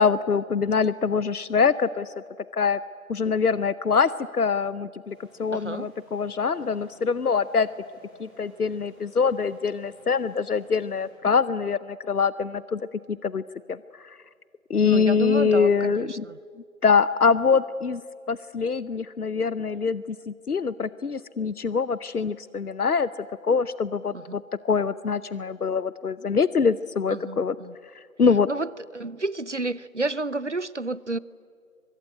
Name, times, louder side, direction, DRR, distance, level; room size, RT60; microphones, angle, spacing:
voice 1, 0.0-2.1 2.5-2.8 3.1-7.7 8.2-12.8 13.1-13.4 13.7-14.2 14.7-16.2 16.8-18.0 18.3-23.1 23.4-27.6 28.2-28.5, left 5 dB, 85° left, 17 dB, 0.8 m, -24 dB
sound 1, 5.0-11.7, equal, 5° right, 2.9 m, -55 dB
voice 2, 5.5-5.9 14.8-16.4 24.1-24.2 27.1-27.7 28.5-31.2, right 2 dB, 55° right, 20 dB, 0.6 m, -30 dB
24.0 x 22.0 x 9.7 m, 2.1 s
figure-of-eight pair, 180°, 44 cm